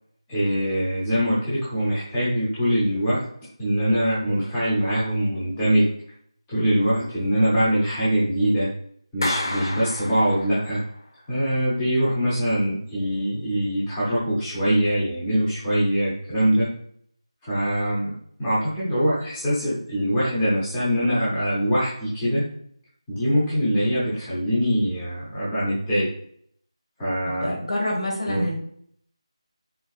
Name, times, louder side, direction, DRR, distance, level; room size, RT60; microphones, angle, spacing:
voice 1, 0.3-3.2 3.6-5.9 6.5-8.7 9.1-10.8 11.3-16.7 17.4-18.1 18.4-22.5 23.1-26.1 27.0-27.5 28.3-28.4, equal, 5° left, -11 dB, 0.6 m, -23 dB
Clapping, 9.2-10.9, left 1 dB, 45° left, 0.7 m, -30 dB
voice 2, 27.4-28.6, left 1 dB, 60° left, -1 dB, 1.8 m, -26 dB
4.4 x 4.0 x 2.3 m, 0.64 s
figure-of-eight pair, 175°, 3 cm